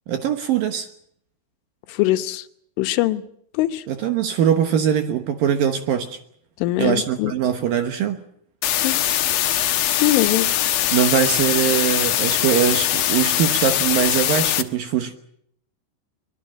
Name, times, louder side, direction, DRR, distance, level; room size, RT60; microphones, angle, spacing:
voice 1, 0.1-0.9 3.9-6.2 6.8-8.2 10.9-15.1, right 9 dB, 70° right, 2.3 m, -21 dB
voice 2, 1.9-2.5 2.8-3.2 3.5-3.8 6.6-7.3 8.7-9.0 9.9-10.5, left 15 dB, 90° left, 3.6 m, -22 dB
sound 1, 8.6-14.6, left 12 dB, 65° left, 2.6 m, -21 dB
23.5 x 22.0 x 7.6 m
omnidirectional pair, 5.4 m